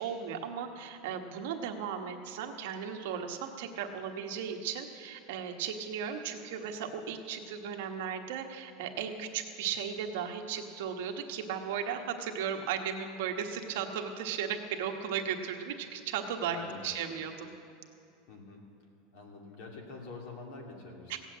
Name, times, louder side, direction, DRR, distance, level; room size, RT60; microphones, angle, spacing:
voice 1, 0.0-17.5 21.1-21.2, right 7 dB, 65° right, 4 dB, 1.3 m, -36 dB
voice 2, 16.5-16.9 18.3-18.6 19.1-21.2, left 3 dB, 55° left, 1 dB, 2.6 m, -46 dB
16.5 x 8.0 x 8.3 m, 2.6 s
supercardioid pair, 180°, 0 cm